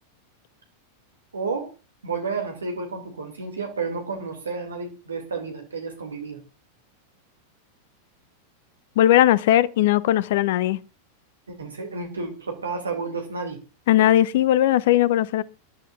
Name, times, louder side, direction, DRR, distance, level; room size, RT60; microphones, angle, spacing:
voice 1, 1.3-1.7 2.0-6.4 11.5-13.6, right 4 dB, 75° right, 2.3 m, -31 dB
voice 2, 9.0-10.8 13.9-15.4, left 13 dB, 55° left, 0.6 m, -18 dB
25.5 x 11.5 x 2.4 m
figure-of-eight pair, 90°, 0 cm